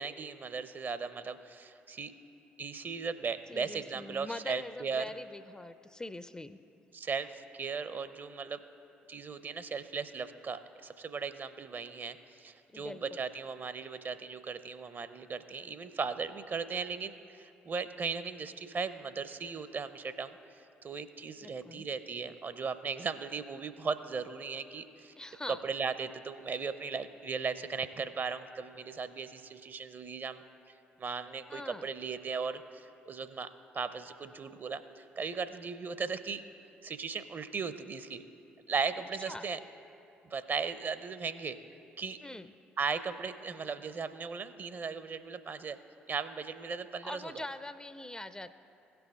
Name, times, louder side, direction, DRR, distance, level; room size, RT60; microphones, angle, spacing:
voice 1, 0.0-2.1 2.6-5.0 6.9-8.6 9.1-20.4 20.8-25.1 25.5-30.4 31.0-36.4 36.8-38.2 38.7-39.6 40.2-41.6 42.0-42.2 42.8-45.8 46.1-47.3, right 5 dB, 35° right, 12 dB, 0.5 m, -37 dB
voice 2, 3.5-6.6 12.7-13.0 21.4-21.9 25.2-25.6 31.5-31.9 39.2-39.5 42.2-42.5 47.0-48.5, left 2 dB, 15° left, 13 dB, 0.4 m, -43 dB
16.5 x 5.8 x 3.6 m, 2.8 s
figure-of-eight pair, 45°, 6 cm